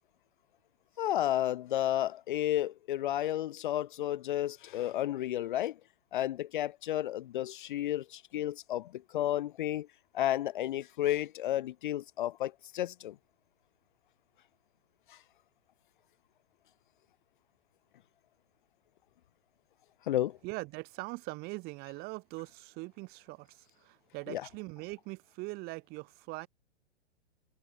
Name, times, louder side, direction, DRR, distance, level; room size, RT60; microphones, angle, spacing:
voice 1, 1.0-5.7 6.1-9.9 10.1-13.1 20.1-20.3 24.3-24.4, left 13 dB, 45° left, 0.8 m, -32 dB
voice 2, 20.4-26.5, right 24 dB, 30° right, 1.4 m, -42 dB
figure-of-eight pair, 110°, 34 cm